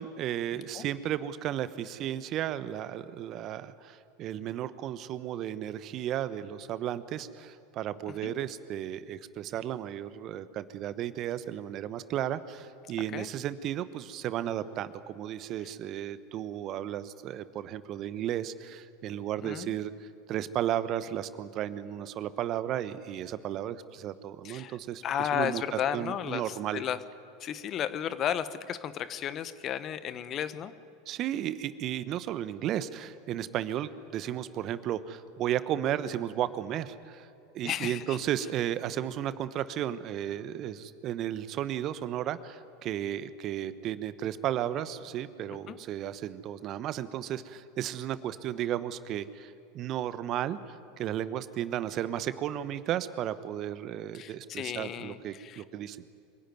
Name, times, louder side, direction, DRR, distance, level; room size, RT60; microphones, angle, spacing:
voice 1, 0.0-26.8 31.1-37.3 37.5-56.0, right 11 dB, 45° right, 14 dB, 1.0 m, -34 dB
voice 2, 19.4-19.7 24.4-24.7 25.0-27.0 27.4-30.7 37.6-38.2 45.7-45.8 54.1-55.6, left 9 dB, 40° left, 14 dB, 1.2 m, -33 dB
25.0 x 16.5 x 9.5 m, 2.5 s
hypercardioid pair, 85°, 0 cm